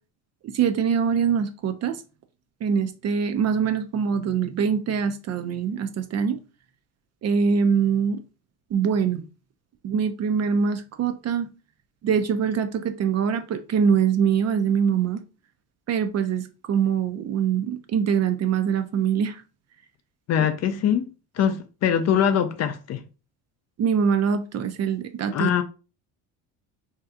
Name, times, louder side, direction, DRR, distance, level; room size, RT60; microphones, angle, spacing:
voice 1, 0.5-2.0 2.6-6.4 7.2-8.2 8.7-9.2 9.8-11.5 12.0-15.2 15.9-19.4 23.8-25.5, right 7 dB, 40° right, 0.4 m, -23 dB
voice 2, 20.3-21.1 21.4-23.0 25.3-25.6, left 9 dB, 40° left, 0.4 m, -22 dB
2.8 x 2.3 x 3.5 m
supercardioid pair, 100°, 42 cm